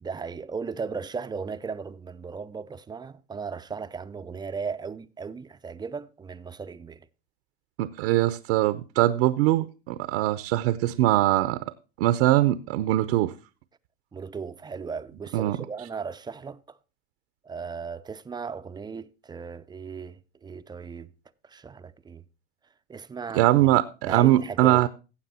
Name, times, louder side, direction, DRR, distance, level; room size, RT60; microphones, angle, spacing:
voice 1, 0.0-7.1 14.1-16.8 17.4-21.1 21.4-22.2 22.9-23.7 24.0-24.9, right 5 dB, 10° right, 0.5 m, -36 dB
voice 2, 7.8-11.7 12.0-13.3 15.3-15.6 23.3-24.9, right 15 dB, 60° right, 0.8 m, -22 dB
16.0 x 7.4 x 4.2 m
hypercardioid pair, 100°, 34 cm